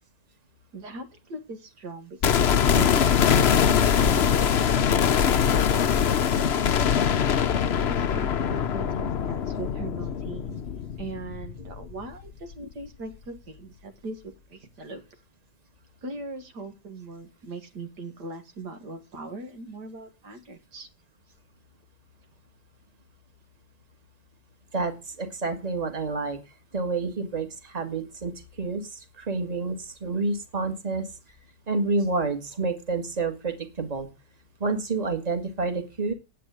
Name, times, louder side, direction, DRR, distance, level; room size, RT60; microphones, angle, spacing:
voice 1, 0.7-4.8 7.9-10.6 11.0-15.0 16.0-20.9, right 3 dB, 75° right, 7 dB, 2.3 m, -40 dB
sound 1, 2.2-12.2 12.5-12.6, left 8 dB, 50° left, 0.8 m, -23 dB
voice 2, 24.7-26.4 26.7-31.1 31.7-34.1 34.6-36.1, right 3 dB, 25° right, 7 dB, 2.0 m, -29 dB
10.0 x 8.6 x 8.1 m, 0.29 s
omnidirectional pair, 1.8 m